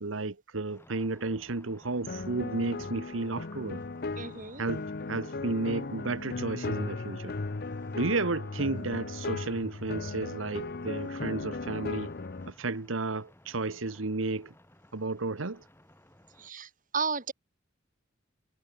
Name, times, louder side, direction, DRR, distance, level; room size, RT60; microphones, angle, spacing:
voice 1, 0.0-3.8 4.6-4.8 5.1-7.4 7.9-12.1 12.5-14.5 14.9-15.6, right 3 dB, 80° right, 1.2 m, -32 dB
sound 1, 0.7-16.5, left 1 dB, 10° left, 6.5 m, -58 dB
sound 2, 2.1-12.5, left 3 dB, 50° left, 0.8 m, -37 dB
voice 2, 4.2-4.6 16.4-17.3, right 5 dB, 40° right, 5.3 m, -33 dB
head